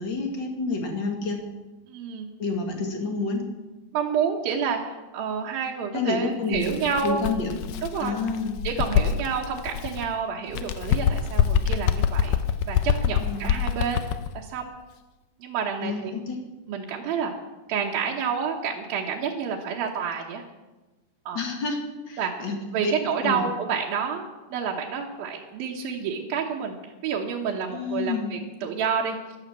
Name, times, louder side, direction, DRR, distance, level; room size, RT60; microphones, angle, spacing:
voice 1, 0.0-1.4 2.4-3.4 5.9-6.8 7.0-7.6 8.0-8.5 13.2-13.4 15.8-16.4 21.3-21.8 22.1-22.6 22.8-22.9 23.2-23.5 27.7-28.3, left 4 dB, 35° left, 3 dB, 2.2 m, -28 dB
voice 2, 1.9-2.3 3.9-4.8 5.1-7.2 7.8-8.1 8.6-12.4 12.7-14.0 14.3-14.7 15.4-16.1 16.7-17.3 17.7-20.4 21.3-21.4 22.2-22.3 22.7-26.8 27.0-29.2, right 6 dB, 80° right, -2 dB, 3.0 m, -29 dB
Bird, 6.5-10.1 10.5-14.3, left 9 dB, 75° left, 2.1 m, -25 dB
12.5 x 12.0 x 7.4 m, 1.1 s
omnidirectional pair, 4.2 m